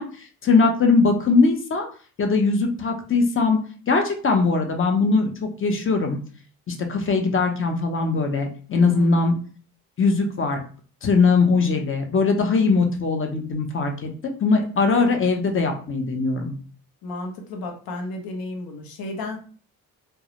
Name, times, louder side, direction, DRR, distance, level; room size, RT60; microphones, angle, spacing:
voice 1, 0.0-1.9 2.2-3.6 3.9-6.2 6.7-9.3 10.0-10.6 11.0-16.5, left 4 dB, 35° left, 4 dB, 0.7 m, -21 dB
voice 2, 8.7-9.2 17.0-19.4, left 2 dB, 65° left, 3 dB, 0.8 m, -33 dB
2.3 x 2.0 x 2.9 m, 0.41 s
supercardioid pair, 60°, 38 cm